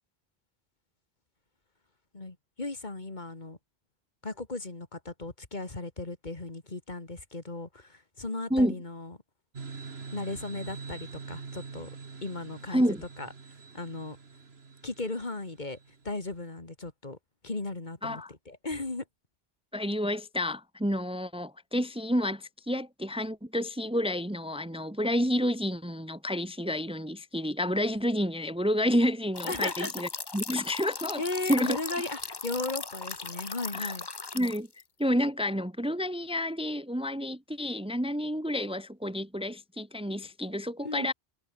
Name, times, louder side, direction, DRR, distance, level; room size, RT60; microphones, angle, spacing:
voice 1, 2.1-3.6 4.2-9.2 10.1-11.9 12.2-12.8 13.2-13.3 13.7-14.2 14.8-15.8 16.0-17.2 17.4-19.0 29.5-29.9 31.2-34.1 40.8-41.1, left 2 dB, 45° left, 2.5 m, -36 dB
sound 1, 9.5-16.0, right 5 dB, 75° right, 2.0 m, -44 dB
voice 2, 12.7-13.0 18.0-18.3 19.7-31.8 33.7-33.9 34.3-34.7 35.0-41.1, equal, 5° right, 1.3 m, -29 dB
sound 2, 29.3-34.8, left 4 dB, 25° left, 0.8 m, -38 dB
omnidirectional pair, 1.1 m